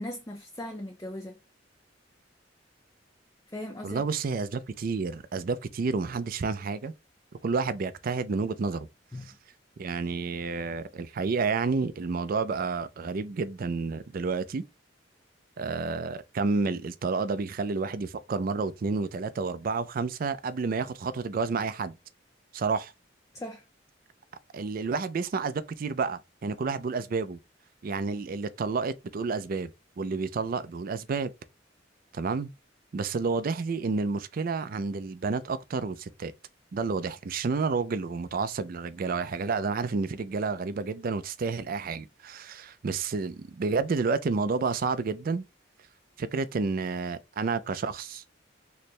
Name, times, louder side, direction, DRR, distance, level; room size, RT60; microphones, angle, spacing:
voice 1, 0.0-1.4 3.5-4.0 9.1-9.3 23.3-23.6, left 1 dB, 15° left, 0.5 m, -38 dB
voice 2, 3.8-6.9 7.4-8.9 9.8-14.6 15.6-21.9 22.5-22.9 24.5-27.4 27.8-29.7 30.0-31.3 32.1-32.5 32.9-36.3 36.7-45.4 46.2-48.2, right 4 dB, 50° right, 0.4 m, -30 dB
3.2 x 2.1 x 4.1 m
head